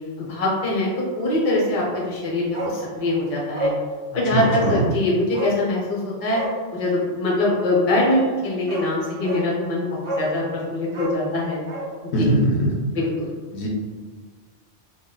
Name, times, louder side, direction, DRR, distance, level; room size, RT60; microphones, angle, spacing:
voice 1, 0.2-0.9 1.2-3.7 4.1-6.4 6.7-11.6 12.2-12.3 12.9-13.3, left 1 dB, 40° left, -4 dB, 0.7 m, -23 dB
Bark, 2.5-2.8 3.1-3.2 3.5-3.8 4.4-4.7 5.3-5.6 6.3-6.6 8.2-8.3 8.7-8.9 9.2-9.5 10.0-10.3 10.9-11.9 12.2-12.3, right 1 dB, 55° right, 0.3 m, -29 dB
voice 2, 4.3-4.9 12.1-12.7 13.5-13.7, equal, 70° left, -3 dB, 0.8 m, -21 dB
2.3 x 2.1 x 3.6 m, 1.5 s
omnidirectional pair, 1.2 m